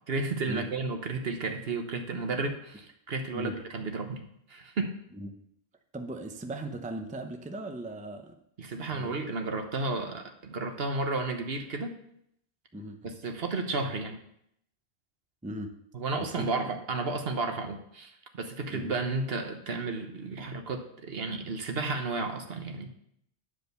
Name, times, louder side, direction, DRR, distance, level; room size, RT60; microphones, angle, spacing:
voice 1, 0.0-4.2 4.5-4.9 8.6-11.9 13.0-14.2 15.9-22.9, right 3 dB, 60° right, 5 dB, 1.2 m, -32 dB
voice 2, 5.9-8.3 8.9-9.1 12.7-13.2 15.4-15.8 16.2-16.5 18.7-18.9, right 1 dB, 10° right, 5 dB, 0.6 m, -38 dB
10.0 x 4.9 x 6.7 m, 0.75 s
omnidirectional pair, 1.1 m